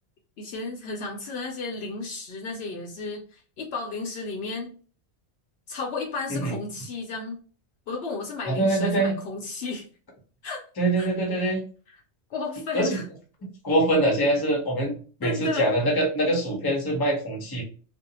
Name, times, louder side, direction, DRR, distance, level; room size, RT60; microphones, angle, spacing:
voice 1, 0.4-4.7 5.7-7.4 7.9-9.8 10.4-10.6 11.0-11.1 12.3-13.0 15.2-15.7, left 3 dB, 65° left, 1 dB, 0.8 m, -33 dB
voice 2, 8.5-9.2 10.8-11.6 12.7-13.0 13.6-17.6, right 1 dB, 25° left, 0 dB, 0.6 m, -24 dB
2.5 x 2.0 x 2.7 m, 0.39 s
omnidirectional pair, 1.2 m